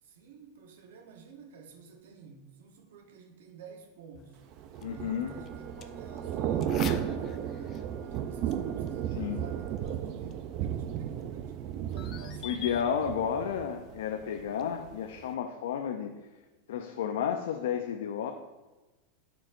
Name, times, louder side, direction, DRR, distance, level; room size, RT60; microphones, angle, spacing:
voice 1, 0.0-4.4 4.9-11.6 11.9-12.9, right 5 dB, 85° right, 3 dB, 0.9 m, -51 dB
sound 1, 4.1-15.2, left 8 dB, 30° left, 0.4 m, -49 dB
Thunder / Rain, 4.5-14.5 14.8-15.1, right 9 dB, 40° right, 0.4 m, -34 dB
voice 2, 4.8-5.3 9.1-9.4 12.4-16.1 16.7-18.3, left 8 dB, 85° left, 5 dB, 0.5 m, -32 dB
Wind instrument woodwind instrument, 4.8-9.8, right 2 dB, 5° right, 0.9 m, -51 dB
12.0 x 4.6 x 2.5 m, 1.2 s
supercardioid pair, 155°, 0 cm